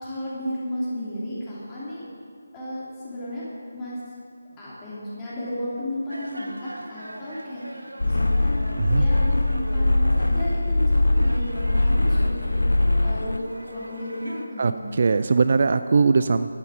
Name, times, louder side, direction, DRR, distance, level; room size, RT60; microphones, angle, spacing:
voice 1, 0.0-2.0 2.5-3.4 3.7-4.0 4.6-8.6 9.0-12.6 13.0-14.9, equal, 15° left, -9 dB, 2.8 m, -33 dB
sound 1, 6.1-14.5, right 1 dB, 75° right, 1.1 m, -40 dB
sound 2, 8.0-13.4, left 2 dB, 70° left, 0.4 m, -21 dB
voice 2, 14.6-16.5, right 4 dB, 40° right, 11 dB, 0.3 m, -20 dB
11.5 x 8.5 x 7.4 m, 2.3 s
figure-of-eight pair, 155°, 0 cm